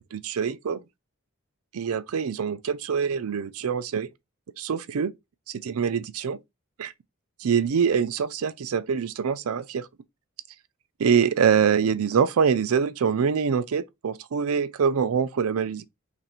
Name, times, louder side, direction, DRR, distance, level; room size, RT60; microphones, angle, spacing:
voice 1, 0.1-0.8 1.7-4.1 4.6-5.1 5.5-6.4 6.8-6.9 7.4-9.9 11.0-15.9, right 6 dB, 75° right, 0.4 m, -24 dB
3.0 x 2.6 x 4.2 m
head